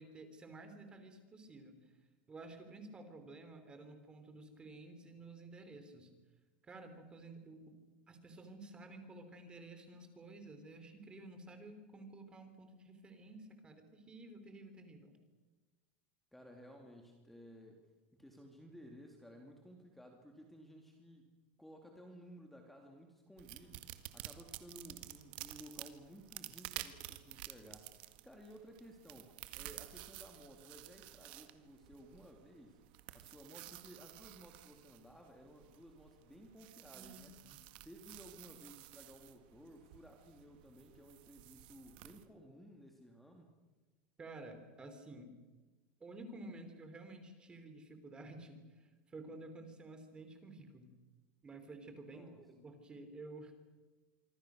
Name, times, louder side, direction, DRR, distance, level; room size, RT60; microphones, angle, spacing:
voice 1, 0.0-1.8 2.3-6.1 6.6-7.8 8.1-15.1 36.9-37.6 44.2-45.3 46.0-50.9 51.4-53.5, right 2 dB, 15° right, 7 dB, 3.5 m, -52 dB
voice 2, 16.3-17.8 18.1-21.3 21.6-23.9 24.1-32.8 33.1-37.3 37.8-43.5 52.1-52.4, equal, 5° left, 2 dB, 2.5 m, -56 dB
sound 1, 23.4-42.2, right 16 dB, 65° right, 1.8 m, -52 dB
26.0 x 25.0 x 6.4 m, 1.3 s
supercardioid pair, 145°, 6 cm